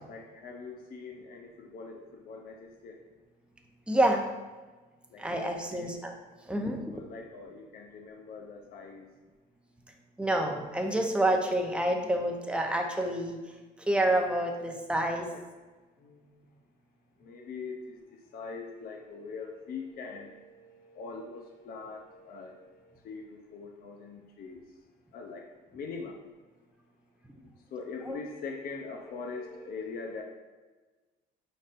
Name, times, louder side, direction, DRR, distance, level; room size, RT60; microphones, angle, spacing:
voice 1, 0.1-3.0 5.1-6.0 6.9-9.1 15.2-15.4 16.0-16.4 17.2-24.6 25.1-25.4 25.7-26.2 27.7-30.2, left 4 dB, 55° left, 2 dB, 0.7 m, -42 dB
voice 2, 3.9-4.3 5.2-6.1 6.5-6.9 10.2-13.4 13.8-15.3 27.3-27.4 28.0-28.2, right 1 dB, 5° right, 2 dB, 0.7 m, -28 dB
5.1 x 4.1 x 2.6 m, 1.3 s
supercardioid pair, 80°, 18 cm